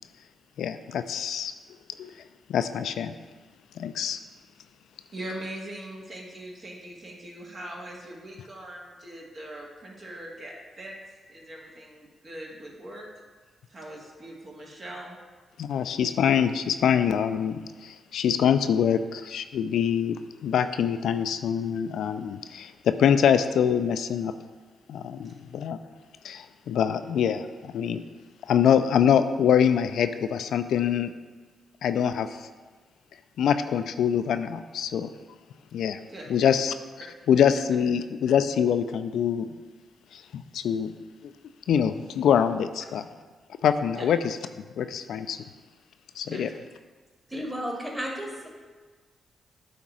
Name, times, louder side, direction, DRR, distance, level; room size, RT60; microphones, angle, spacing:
voice 1, 0.6-1.5 2.0-2.1 2.5-3.2 3.8-4.2 15.6-24.3 24.9-25.8 26.2-28.0 28.5-31.1 31.8-32.5 33.4-35.1 35.7-36.0 36.3-36.7 37.3-39.5 40.1-40.9 41.7-43.1 43.6-44.4 44.8-45.4 46.2-46.5, left 8 dB, 75° left, 10 dB, 0.3 m, -24 dB
voice 2, 5.1-10.9 11.3-13.1 13.7-15.2 25.2-25.3 36.1-36.3 43.9-44.1 46.3-46.4 47.3-47.4, right 1 dB, 50° right, -2 dB, 1.7 m, -41 dB
voice 3, 47.3-48.5, equal, 15° right, -1 dB, 2.1 m, -33 dB
8.4 x 2.9 x 6.1 m, 1.4 s
hypercardioid pair, 45°, 0 cm